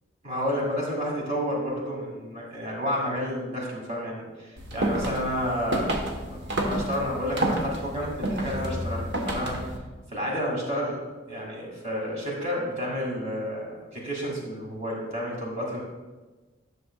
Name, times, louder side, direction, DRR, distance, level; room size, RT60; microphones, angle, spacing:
voice 1, 0.2-5.9 6.2-9.7 10.1-11.0 11.3-13.7 13.9-15.8, equal, 35° right, -2 dB, 2.2 m, -30 dB
sound 1, 4.6-9.8, right 1 dB, 60° right, 1.1 m, -30 dB
11.0 x 6.8 x 2.3 m, 1.2 s
head